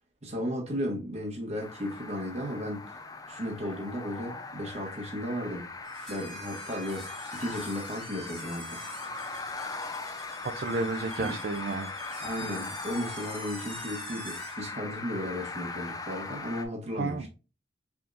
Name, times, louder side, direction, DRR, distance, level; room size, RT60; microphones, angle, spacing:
voice 1, 0.2-3.0 3.3-5.7 6.1-8.8 11.2-11.4 12.2-17.3, equal, 35° right, 1.5 m, -35 dB
sound 1, 1.6-16.7, left 3 dB, 20° left, 0.4 m, -40 dB
sound 2, 5.8-14.7, right 1 dB, 5° left, 1.6 m, -46 dB
voice 2, 10.5-11.9 17.0-17.3, right 3 dB, 55° right, 0.4 m, -31 dB
4.8 x 3.6 x 2.5 m
head